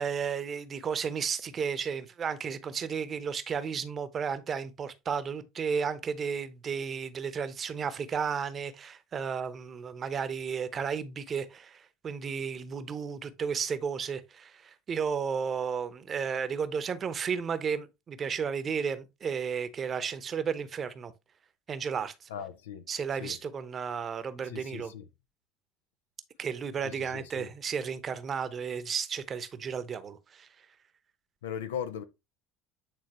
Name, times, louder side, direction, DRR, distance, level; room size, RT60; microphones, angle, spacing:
voice 1, 0.0-21.1 21.7-22.3 22.9-24.9 26.4-30.5, right 6 dB, 35° right, 0.9 m, -33 dB
voice 2, 22.3-22.9 23.2-23.4 24.4-25.1 26.8-27.5 31.4-32.0, left 8 dB, 75° left, 0.6 m, -39 dB
8.8 x 3.8 x 3.0 m
hypercardioid pair, 70°, 0 cm